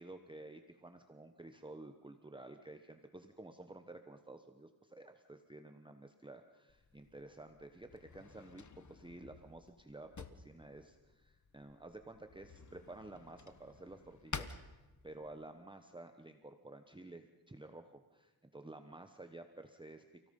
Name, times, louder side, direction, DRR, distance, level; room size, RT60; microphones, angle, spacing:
voice 1, 0.0-14.6 15.0-20.3, right 2 dB, 15° right, 6 dB, 1.1 m, -52 dB
Drawer open or close, 6.7-15.4, left 5 dB, 50° left, 1.3 m, -52 dB
29.5 x 17.5 x 5.4 m, 1.2 s
wide cardioid pair, 85°, 38 cm